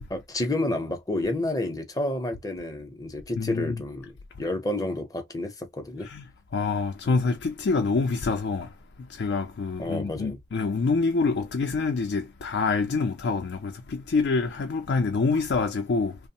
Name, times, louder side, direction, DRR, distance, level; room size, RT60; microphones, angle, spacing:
voice 1, 0.1-4.1 4.4-6.1 9.8-10.4, left 1 dB, 20° left, 0.6 m, -30 dB
voice 2, 3.4-3.8 6.0-6.2 6.5-8.7 9.1-16.2, left 4 dB, 75° left, 0.4 m, -26 dB
3.0 x 2.0 x 2.7 m
head